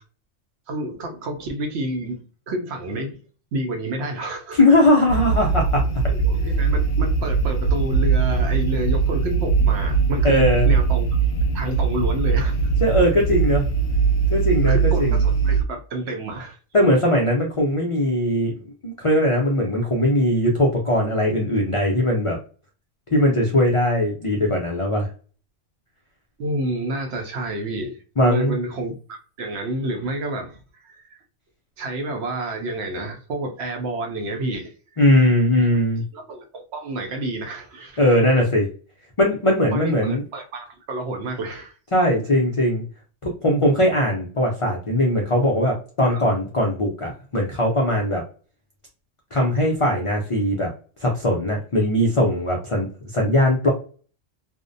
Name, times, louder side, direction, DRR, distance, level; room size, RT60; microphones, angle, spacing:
voice 1, 0.7-3.2 3.5-4.6 6.1-11.1 11.5-12.7 14.6-16.6 26.4-31.2 31.8-34.7 36.1-38.2 39.7-41.7 46.0-46.2, right 1 dB, 65° right, 0.8 m, -29 dB
voice 2, 4.5-5.8 10.2-10.7 12.8-13.6 14.3-15.2 16.7-18.5 18.8-22.4 23.1-25.1 28.2-28.5 35.0-36.0 38.0-38.7 39.2-40.2 41.9-42.8 43.2-48.2 49.3-50.7 51.0-53.7, left 1 dB, 60° left, 0.3 m, -20 dB
sound 1, 5.1-15.6, right 5 dB, 85° left, 0.9 m, -20 dB
2.5 x 2.0 x 2.5 m
omnidirectional pair, 1.3 m